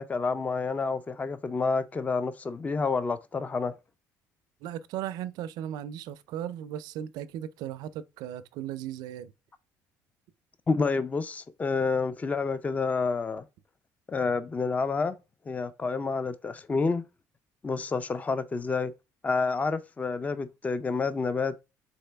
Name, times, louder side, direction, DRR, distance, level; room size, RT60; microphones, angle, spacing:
voice 1, 0.0-3.7 10.7-13.4 14.1-15.1 15.5-17.0 17.6-18.9 19.2-21.5, left 4 dB, 20° left, 0.4 m, -29 dB
voice 2, 4.6-9.3, right 11 dB, 75° right, 0.4 m, -36 dB
4.1 x 3.6 x 3.4 m
supercardioid pair, 90°, 7 cm